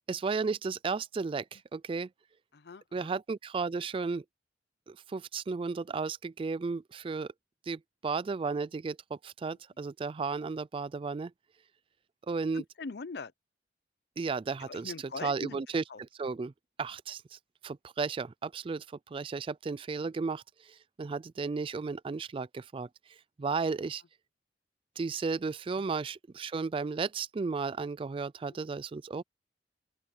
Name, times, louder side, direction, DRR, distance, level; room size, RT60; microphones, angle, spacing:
voice 1, 0.1-2.1 2.9-4.2 4.9-7.3 7.7-11.3 12.3-12.6 14.2-14.9 15.2-16.5 16.8-17.2 17.6-18.8 19.1-20.4 21.0-22.9 23.4-24.0 25.0-29.2, right 4 dB, 30° right, 0.3 m, -34 dB
voice 2, 2.5-3.1 9.5-9.6 12.5-13.3 14.6-15.6 15.9-16.0 25.8-25.9 28.5-28.6, left 4 dB, 65° left, 0.6 m, -42 dB
open air
head